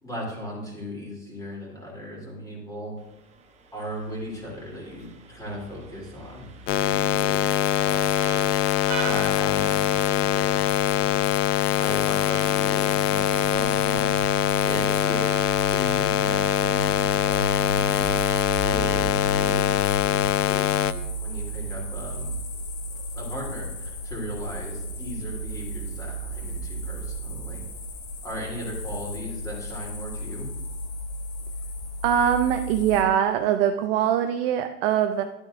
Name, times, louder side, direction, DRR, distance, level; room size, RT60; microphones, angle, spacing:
voice 1, 0.0-2.9 3.7-8.5 8.9-11.2 11.7-14.1 14.6-15.2 18.6-20.7 21.2-22.3 23.1-27.6 28.2-30.5, equal, 5° left, -3 dB, 3.0 m, -37 dB
Vehicle horn car horn honking, 3.0-19.8, right 5 dB, 15° right, 0.8 m, -44 dB
sound 1, 6.7-20.9, left 11 dB, 70° left, 0.7 m, -23 dB
sound 2, 13.2-33.0, equal, 50° left, 2.1 m, -33 dB
voice 2, 32.0-35.2, right 9 dB, 40° right, 6 dB, 0.5 m, -22 dB
12.0 x 8.5 x 2.5 m, 0.94 s
hypercardioid pair, 135°, 48 cm